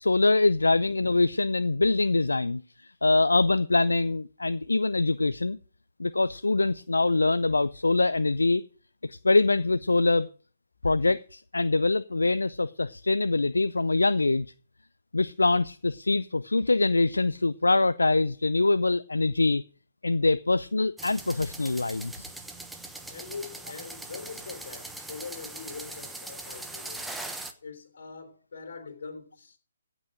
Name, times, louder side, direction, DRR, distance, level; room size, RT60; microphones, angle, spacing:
voice 1, 0.0-5.6 6.0-8.6 9.0-10.3 10.8-14.5 15.1-19.6 20.0-22.3, left 3 dB, 80° left, 0.5 m, -24 dB
sound 1, 21.0-27.5, right 2 dB, 5° right, 1.1 m, -41 dB
voice 2, 23.1-27.1 27.6-29.6, left 5 dB, 55° left, 3.4 m, -42 dB
16.5 x 6.1 x 6.4 m
figure-of-eight pair, 140°, 0 cm